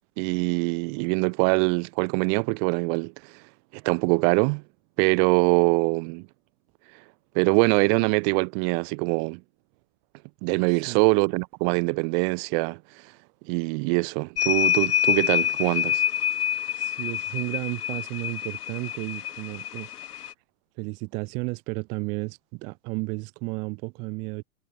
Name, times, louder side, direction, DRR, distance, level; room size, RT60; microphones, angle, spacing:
voice 1, 0.2-3.3 3.7-4.6 5.0-6.3 7.3-9.4 10.4-12.8 13.5-16.0, right 40 dB or more, 30° right, 0.9 m, -23 dB
voice 2, 10.7-11.0 16.8-19.9 20.8-24.4, right 30 dB, 10° right, 0.3 m, -33 dB
sound 1, 14.4-20.3, left 10 dB, 75° left, 1.7 m, -27 dB
hypercardioid pair, 120°, 47 cm